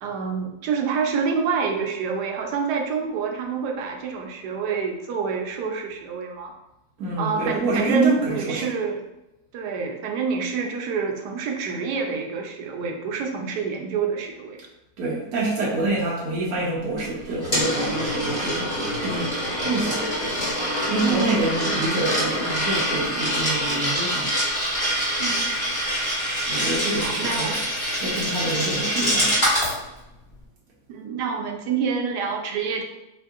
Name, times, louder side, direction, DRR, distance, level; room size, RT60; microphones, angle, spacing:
voice 1, 0.0-6.5 7.2-9.0 9.5-14.6 21.0-21.4 25.2-25.5 26.9-27.7 30.9-32.8, right 5 dB, 90° right, 2 dB, 1.2 m, -27 dB
voice 2, 7.0-8.7 15.0-20.1 20.9-24.4 26.5-27.5 28.0-29.5, right 2 dB, 70° right, -5 dB, 1.2 m, -27 dB
Coin (dropping), 17.0-29.7, equal, 25° left, 1.7 m, -25 dB
4.4 x 2.6 x 2.4 m, 0.93 s
omnidirectional pair, 1.7 m